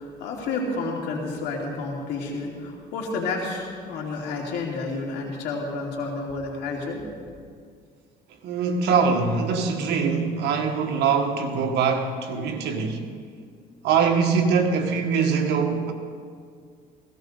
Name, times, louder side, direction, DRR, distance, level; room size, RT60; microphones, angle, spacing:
voice 1, 0.0-7.0, left 3 dB, 80° left, 2.7 m, -30 dB
voice 2, 8.4-13.0 13.8-15.9, right 5 dB, 85° right, 1.5 m, -23 dB
16.5 x 16.0 x 3.9 m
cardioid pair, 110°, 17 cm